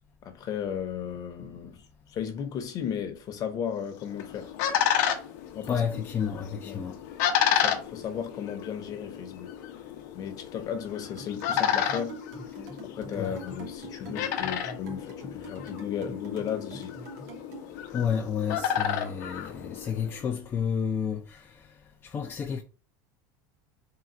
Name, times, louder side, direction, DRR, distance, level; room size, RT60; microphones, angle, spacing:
voice 1, 0.2-4.5 5.5-5.8 6.6-6.8 7.5-9.5 10.1-12.2 12.8-17.0, left 8 dB, 40° left, 0.8 m, -35 dB
sound 1, 3.9-20.2, left 9 dB, 80° left, 0.7 m, -31 dB
voice 2, 5.6-7.0 13.2-13.4 17.9-22.6, left 7 dB, 25° left, 0.4 m, -31 dB
sound 2, 11.2-17.7, right 5 dB, 90° right, 1.4 m, -45 dB
3.8 x 2.3 x 4.3 m
supercardioid pair, 140°, 10 cm